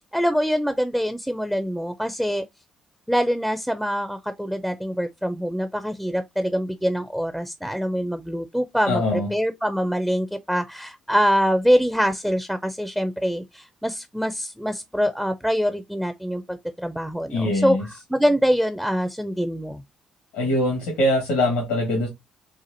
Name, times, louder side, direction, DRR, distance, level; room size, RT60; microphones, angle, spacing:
voice 1, 0.1-2.5 3.1-19.8, equal, ahead, 0.4 m, -24 dB
voice 2, 8.9-9.3 17.3-17.8 20.3-22.1, left 1 dB, 85° left, 1.3 m, -22 dB
4.2 x 2.4 x 2.6 m
hypercardioid pair, 50°, 2 cm